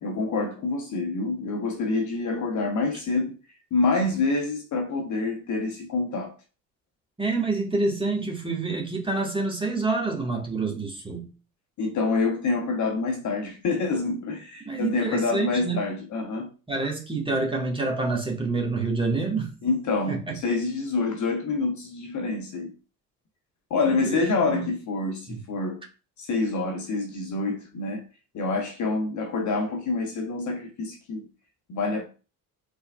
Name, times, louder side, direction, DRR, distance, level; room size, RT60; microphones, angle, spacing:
voice 1, 0.0-3.4 3.7-6.3 11.8-16.5 19.6-22.7 23.7-25.8 26.2-28.0 28.3-31.3 31.7-32.0, left 3 dB, 40° left, 0.9 m, -27 dB
voice 2, 7.2-11.3 14.1-14.2 14.6-15.8 16.7-19.5 20.1-20.2 23.9-24.7 25.3-25.4, right 3 dB, 10° right, 1.5 m, -27 dB
4.2 x 3.5 x 2.3 m
figure-of-eight pair, 45°, 44 cm